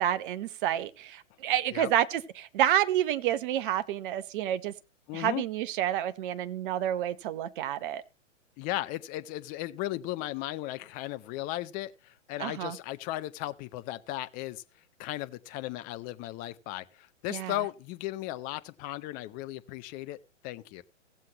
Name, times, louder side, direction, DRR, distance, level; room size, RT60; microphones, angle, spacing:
voice 1, 0.0-4.7 5.1-8.0 12.4-12.8 17.3-17.5, right 11 dB, 40° right, 1.0 m, -29 dB
voice 2, 5.1-5.4 8.6-14.6 15.0-20.8, left 16 dB, 20° left, 0.6 m, -36 dB
17.5 x 7.5 x 2.9 m
hypercardioid pair, 120°, 38 cm